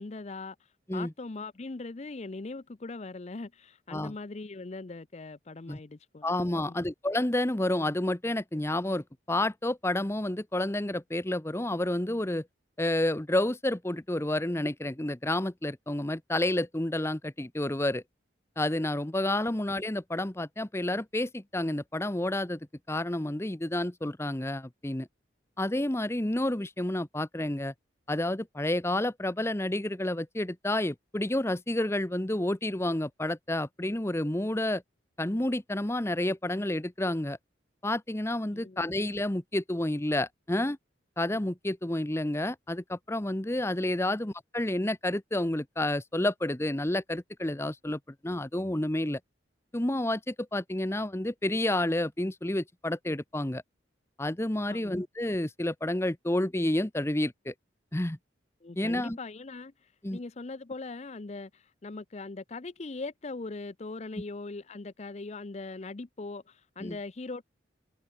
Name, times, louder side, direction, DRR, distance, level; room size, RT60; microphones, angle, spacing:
voice 1, 0.0-6.9 38.5-38.9 54.7-54.9 58.6-67.4, left 3 dB, 35° left, 0.6 m, -41 dB
voice 2, 6.2-12.5 12.8-18.0 18.6-22.6 22.9-25.1 25.6-27.7 28.1-34.8 35.2-37.4 37.8-40.8 41.2-49.2 49.7-53.6 54.2-57.5 57.9-58.2 58.8-59.2 60.0-60.2 66.8-67.0, left 1 dB, 15° left, 0.9 m, -30 dB
head